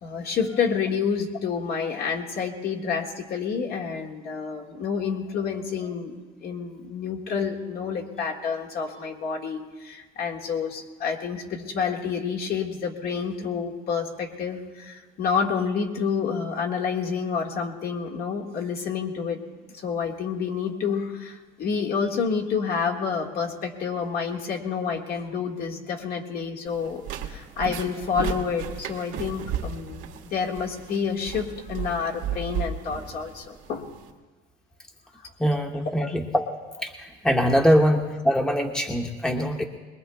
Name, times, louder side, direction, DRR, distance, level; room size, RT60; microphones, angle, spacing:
voice 1, 0.0-19.4 19.7-33.9 35.2-35.3 36.0-36.1, left 6 dB, 55° left, 1 dB, 1.8 m, -29 dB
sound 1, 26.7-34.1, right 7 dB, 80° right, 1.6 m, -34 dB
voice 2, 35.4-36.5 36.8-39.6, equal, 5° left, 2 dB, 0.8 m, -23 dB
22.5 x 21.0 x 2.3 m, 1.3 s
cardioid pair, 140°, 20 cm